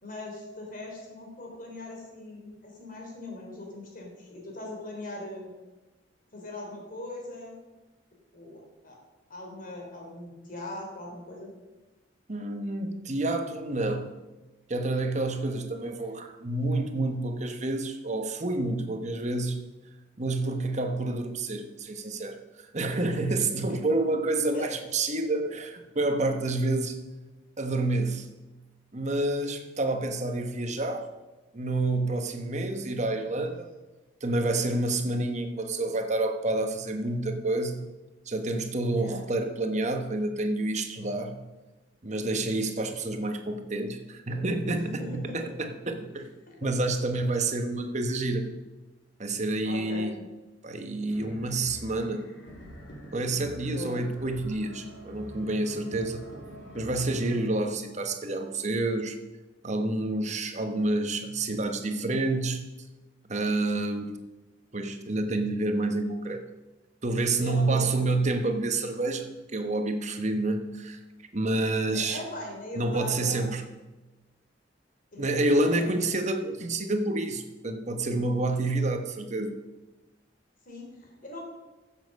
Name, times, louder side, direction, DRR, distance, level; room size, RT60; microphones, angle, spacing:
voice 1, 0.0-5.5 6.3-7.6 8.3-9.0 9.3-11.5 23.7-23.8 24.5-24.7 38.9-39.2 44.8-45.5 46.5-46.7 49.6-50.1 53.7-54.0 67.4-67.9 71.9-73.5 75.1-75.9 80.6-81.4, left 1 dB, 45° left, 0 dB, 3.2 m, -40 dB
voice 2, 12.3-14.1 14.7-19.6 20.2-22.4 22.7-27.0 27.6-28.3 28.9-31.1 31.5-33.7 34.2-37.8 38.3-41.4 42.0-46.3 46.6-48.5 49.2-50.2 50.6-52.3 53.1-56.3 56.8-59.2 59.6-62.7 63.2-64.2 64.7-66.4 67.0-71.0 71.3-72.2 72.7-73.6 75.2-79.6, right 2 dB, 40° right, 6 dB, 1.2 m, -28 dB
sound 1, 51.1-57.5, equal, 75° left, 3.2 m, -45 dB
14.5 x 7.5 x 5.4 m, 1.1 s
head